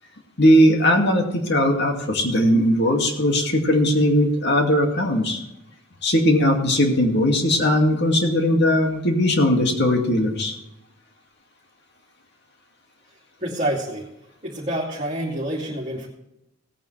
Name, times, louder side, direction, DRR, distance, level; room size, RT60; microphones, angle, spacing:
voice 1, 0.4-5.4 6.0-10.5, left 1 dB, 55° left, 2 dB, 2.2 m, -19 dB
voice 2, 13.4-14.1 14.4-16.1, right 1 dB, 30° right, -6 dB, 2.6 m, -27 dB
18.0 x 9.4 x 3.3 m, 0.86 s
head